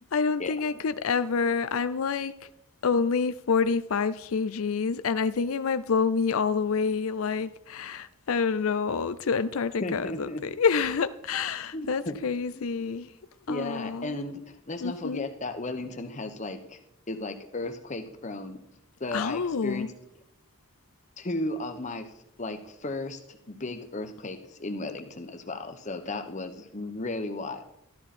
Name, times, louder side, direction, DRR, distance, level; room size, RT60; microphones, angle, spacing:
voice 1, 0.1-2.5 2.8-13.1 13.5-14.1 14.8-15.3 19.1-19.9, left 5 dB, 80° left, 0.5 m, -27 dB
voice 2, 9.8-10.4 11.7-12.1 12.5-12.9 13.5-16.8 17.1-18.6 19.0-19.9 21.2-22.1 22.4-27.6, left 2 dB, 35° left, 1.1 m, -35 dB
13.0 x 12.5 x 4.3 m
head